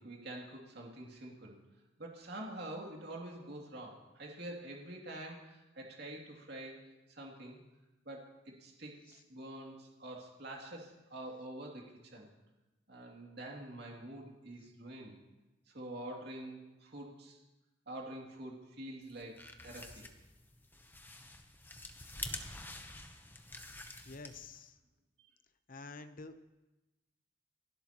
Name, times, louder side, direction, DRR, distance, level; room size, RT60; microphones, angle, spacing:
voice 1, 0.0-1.6 2.0-6.8 7.1-7.6 8.0-11.9 12.1-12.3 12.9-15.2 15.7-17.4 17.9-20.1, right 1 dB, 55° right, -1 dB, 2.7 m, -46 dB
sound 1, 19.1-24.6, left 2 dB, 10° left, 0.9 m, -47 dB
voice 2, 24.0-24.8 25.7-26.4, left 3 dB, 45° left, 10 dB, 0.8 m, -49 dB
28.5 x 12.0 x 3.0 m, 1.1 s
head